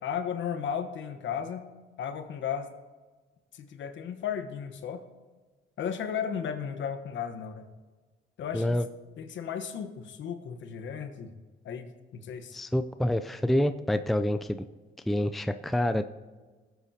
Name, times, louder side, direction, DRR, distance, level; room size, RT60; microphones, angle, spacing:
voice 1, 0.0-1.6 2.0-2.7 3.5-5.0 5.8-7.7 8.4-8.8 9.2-11.3 11.6-12.6, left 7 dB, 70° left, 7 dB, 1.1 m, -35 dB
voice 2, 8.5-8.9 12.5-14.6 15.1-16.0, left 1 dB, ahead, 9 dB, 0.4 m, -27 dB
18.0 x 8.1 x 2.8 m, 1.3 s
cardioid pair, 90°, 20 cm